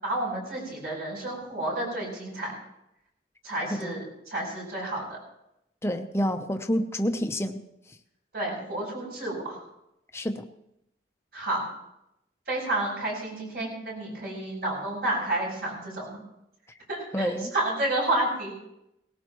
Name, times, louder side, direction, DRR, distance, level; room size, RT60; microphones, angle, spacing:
voice 1, 0.0-2.5 3.4-5.2 8.3-9.6 11.3-11.6 12.5-16.2 16.9-18.5, right 1 dB, 60° right, -2 dB, 7.8 m, -30 dB
voice 2, 3.7-4.0 5.8-7.6 10.1-10.5 17.1-17.5, equal, 15° left, 6 dB, 0.8 m, -28 dB
19.0 x 17.5 x 3.1 m, 0.83 s
head